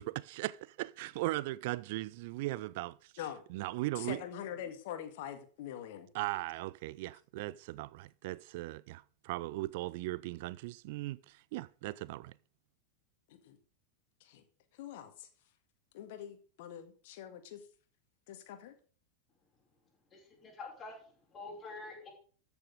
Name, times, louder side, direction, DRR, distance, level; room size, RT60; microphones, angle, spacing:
voice 1, 0.0-3.1 3.5-4.2 6.1-12.3, right 18 dB, 50° right, 0.4 m, -38 dB
voice 2, 4.0-6.1 13.3-13.6 14.2-14.4 14.7-15.3 15.9-17.7 18.3-18.7, left 10 dB, 50° left, 2.0 m, -44 dB
voice 3, 20.1-22.1, left 3 dB, 20° left, 5.3 m, -47 dB
13.5 x 7.0 x 5.2 m
figure-of-eight pair, 90°, 0 cm